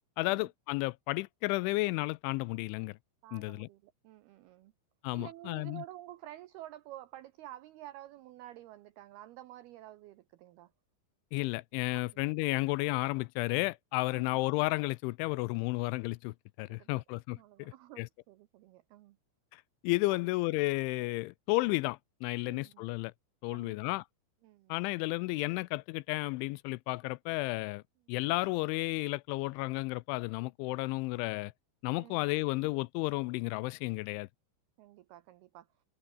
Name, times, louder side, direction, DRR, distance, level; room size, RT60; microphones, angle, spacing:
voice 1, 0.2-3.0 3.3-3.7 5.0-5.8 11.3-18.1 19.5-23.1 23.4-24.0 24.7-27.8 28.1-31.5 31.8-34.3, left 22 dB, 85° left, 2.8 m, -32 dB
voice 2, 3.2-4.7 5.1-10.7 11.9-12.2 14.1-14.4 16.7-17.0 17.4-19.2 20.1-20.2 22.4-22.8 23.5-23.9 24.4-24.8 32.0-32.2 34.8-35.7, right 14 dB, 85° right, 2.2 m, -50 dB
omnidirectional pair, 5.6 m